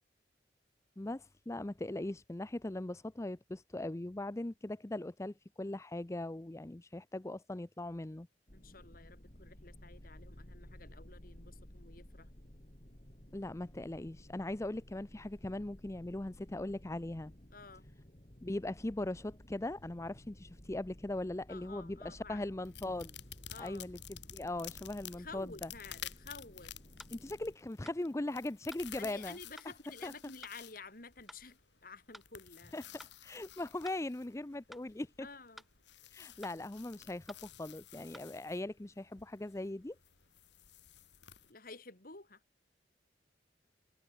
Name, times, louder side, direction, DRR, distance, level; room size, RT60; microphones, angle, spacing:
voice 1, 1.0-8.3 13.3-17.3 18.4-23.1 23.6-24.0 24.3-25.7 27.1-29.4 30.0-30.1 32.7-32.8 33.2-35.3 36.1-40.0, left 1 dB, 15° left, 0.5 m, -40 dB
voice 2, 8.5-12.5 17.5-17.8 21.5-22.5 23.5-23.9 25.1-26.7 29.0-32.8 35.2-35.6 41.5-42.4, left 4 dB, 50° left, 3.7 m, -51 dB
sound 1, 8.5-27.6, equal, 35° left, 2.9 m, -56 dB
sound 2, 22.6-41.5, left 11 dB, 75° left, 3.9 m, -53 dB
sound 3, 27.0-27.2 27.9-28.0 28.7-28.9 29.6-29.7 30.4-30.6 31.3-31.4 32.1-32.3 33.0-33.2 33.8-34.0 34.7-34.9 35.6-35.7 36.4-36.6 37.3-37.5 38.1-38.3, equal, ahead, 1.9 m, -53 dB
head